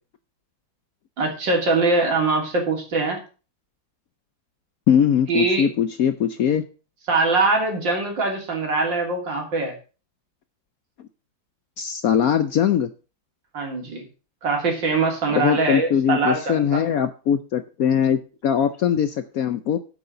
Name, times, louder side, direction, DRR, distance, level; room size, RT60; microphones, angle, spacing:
voice 1, 1.2-3.2 5.3-5.7 7.1-9.7 13.5-14.0 14.4-16.8, right 3 dB, 75° right, 2 dB, 3.5 m, -22 dB
voice 2, 4.9-6.6 11.8-12.9 15.3-19.8, left 8 dB, 65° left, 11 dB, 0.9 m, -21 dB
7.9 x 6.7 x 6.6 m, 0.34 s
omnidirectional pair, 2.0 m